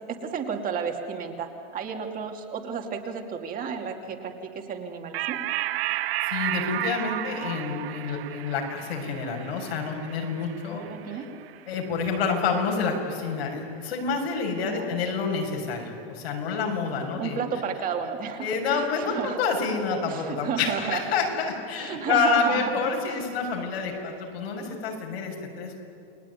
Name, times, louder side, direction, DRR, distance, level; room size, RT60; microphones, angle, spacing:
voice 1, 0.1-5.4 10.7-11.3 14.6-14.9 17.0-19.4 20.1-21.0 21.7-22.7 23.0-23.2, right 6 dB, 30° right, 3 dB, 2.4 m, -32 dB
sound 1, 5.1-12.0, right 14 dB, 85° right, 0.9 m, -33 dB
voice 2, 6.3-11.2 11.7-17.4 18.4-25.8, left 5 dB, 85° left, 1 dB, 6.7 m, -28 dB
29.5 x 20.0 x 9.7 m, 2.5 s
supercardioid pair, 150°, 30 cm